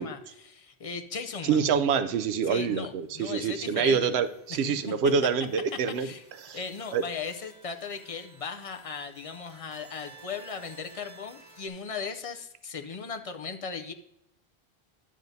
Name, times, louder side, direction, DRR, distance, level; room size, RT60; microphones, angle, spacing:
voice 1, 0.0-1.6 2.5-4.1 4.6-4.9 5.2-5.3 5.7-6.2 6.5-13.9, left 5 dB, 50° left, 6 dB, 0.4 m, -37 dB
voice 2, 1.4-6.1 6.4-6.6 6.9-7.0, right 6 dB, 90° right, 10 dB, 0.9 m, -26 dB
sound 1, 2.8-11.7, right 4 dB, 45° right, 1.7 m, -55 dB
10.5 x 7.5 x 2.6 m, 0.80 s
omnidirectional pair, 1.0 m